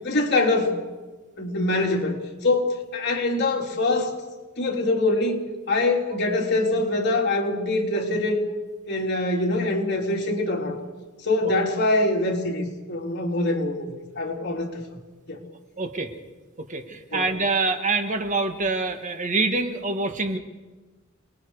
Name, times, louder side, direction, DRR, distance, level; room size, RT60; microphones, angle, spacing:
voice 1, 0.0-0.7 1.4-2.2 2.4-4.1 4.6-5.4 5.7-8.4 8.9-10.8 11.2-13.9 14.2-14.8 15.3-15.4 17.1-17.2, left 2 dB, 55° left, 0 dB, 3.6 m, -24 dB
voice 2, 15.8-16.1 16.7-20.4, right 3 dB, 40° right, 6 dB, 1.7 m, -25 dB
29.0 x 20.5 x 4.9 m, 1.2 s
head